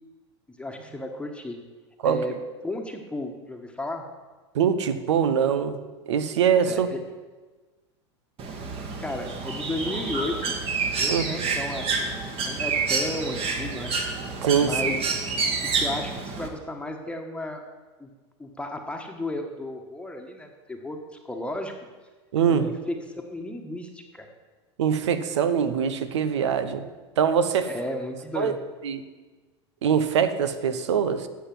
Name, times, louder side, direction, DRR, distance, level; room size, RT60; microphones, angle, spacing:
voice 1, 0.5-1.6 2.0-2.4 2.6-4.1 6.6-7.0 9.0-10.5 10.9-13.9 14.6-15.1 15.6-17.6 18.0-18.1 18.4-21.7 22.5-24.3 27.7-28.6, left 1 dB, 5° left, 3 dB, 1.4 m, -34 dB
voice 2, 4.5-5.8 6.1-6.9 11.1-11.2 14.4-14.9 22.3-22.7 24.8-26.8 27.2-27.7 28.4-28.5 28.8-29.0 29.8-31.3, right 7 dB, 85° right, 11 dB, 1.0 m, -23 dB
Bird, 8.4-16.5, right 4 dB, 40° right, 2.0 m, -28 dB
11.5 x 7.3 x 7.7 m, 1.3 s
hypercardioid pair, 100°, 15 cm